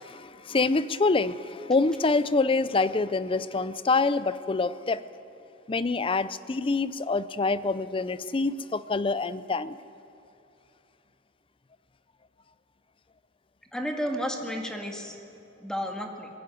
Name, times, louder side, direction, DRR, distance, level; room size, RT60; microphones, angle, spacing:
voice 1, 0.0-5.0 5.7-9.8, left 3 dB, 25° left, 15 dB, 0.5 m, -26 dB
voice 2, 13.7-15.1 15.6-16.3, equal, 5° left, 2 dB, 2.0 m, -32 dB
21.5 x 15.5 x 9.4 m, 2.8 s
head